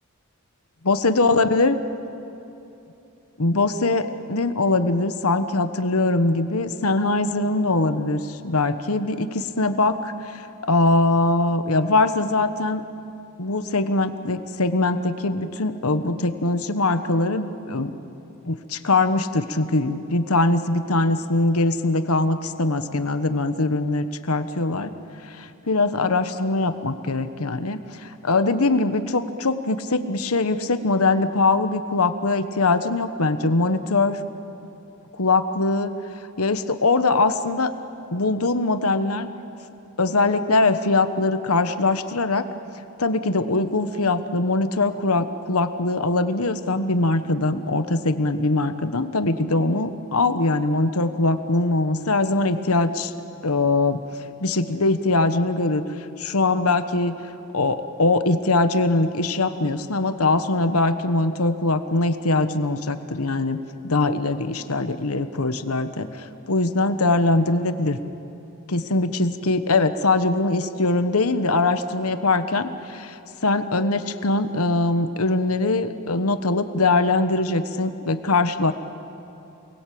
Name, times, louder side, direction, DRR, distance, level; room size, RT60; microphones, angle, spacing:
voice 1, 0.8-1.8 3.4-12.8 13.4-18.0 18.5-24.9 25.4-34.2 35.2-35.9 36.4-37.7 38.1-39.3 40.0-42.4 43.0-53.1 53.4-54.0 54.4-55.8 56.2-57.1 57.5-63.6 63.8-68.0 68.7-73.2 73.4-78.7, left 2 dB, 75° left, 10 dB, 1.3 m, -22 dB
29.0 x 20.5 x 8.7 m, 2.8 s
head